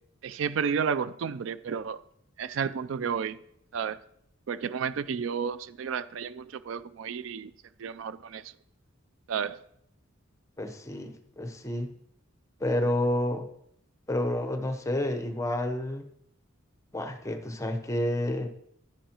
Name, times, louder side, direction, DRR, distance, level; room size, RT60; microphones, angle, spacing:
voice 1, 0.2-2.0 2.4-3.4 3.7-4.0 4.5-7.5 7.8-8.5 9.3-9.6, right 6 dB, 65° right, 0.4 m, -32 dB
voice 2, 10.6-11.9 12.6-13.5 14.1-16.1 16.9-18.5, left 1 dB, 15° left, 0.8 m, -29 dB
10.5 x 10.0 x 2.9 m
head